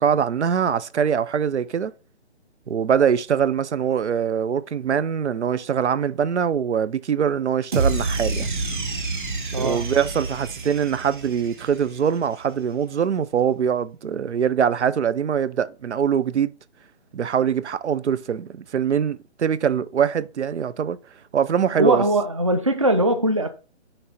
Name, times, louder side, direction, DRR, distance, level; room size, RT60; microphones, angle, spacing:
voice 1, 0.0-1.9 2.7-8.5 9.6-16.5 17.1-21.0 21.3-22.0, right 8 dB, 80° right, 0.7 m, -23 dB
sound 1, 7.7-12.1, right 3 dB, 45° right, 1.5 m, -28 dB
voice 2, 9.5-9.8 21.8-23.5, right 1 dB, 30° right, 0.5 m, -20 dB
9.9 x 3.4 x 4.2 m
hypercardioid pair, 175°, 34 cm